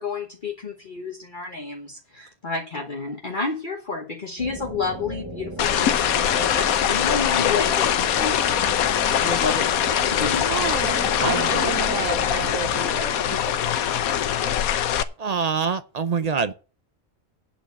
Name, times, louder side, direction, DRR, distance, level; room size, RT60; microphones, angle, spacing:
voice 1, 0.0-10.6, left 4 dB, 35° left, 1.3 m, -31 dB
sound 1, 4.4-12.8, right 1 dB, 20° right, 0.8 m, -36 dB
sound 2, 5.6-15.0, left 10 dB, 85° left, 1.2 m, -22 dB
voice 2, 10.5-14.0 14.4-14.7, right 8 dB, 65° right, 1.1 m, -32 dB
voice 3, 11.2-11.7 15.2-16.5, right 5 dB, 50° right, 0.4 m, -25 dB
8.8 x 6.3 x 8.2 m
omnidirectional pair, 1.5 m